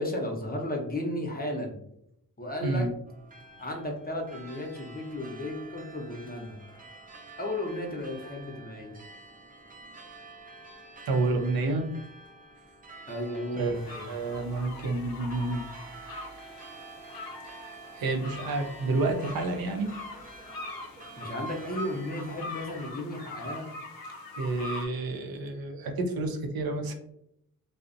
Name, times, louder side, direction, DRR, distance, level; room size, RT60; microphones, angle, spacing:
voice 1, 0.0-1.8 2.4-2.9 3.6-6.6 7.4-8.9 13.1-14.1 21.2-23.7, left 1 dB, 25° left, 1 dB, 0.7 m, -34 dB
sound 1, 3.1-22.9, right 3 dB, 25° right, 0.5 m, -49 dB
voice 2, 11.0-11.9 13.5-13.7 14.1-15.6 17.9-19.9 24.4-26.9, right 2 dB, 70° right, 3 dB, 0.5 m, -29 dB
sound 2, 13.7-24.9, left 2 dB, 70° left, 0.5 m, -43 dB
2.4 x 2.0 x 2.5 m, 0.76 s
cardioid pair, 45°, 37 cm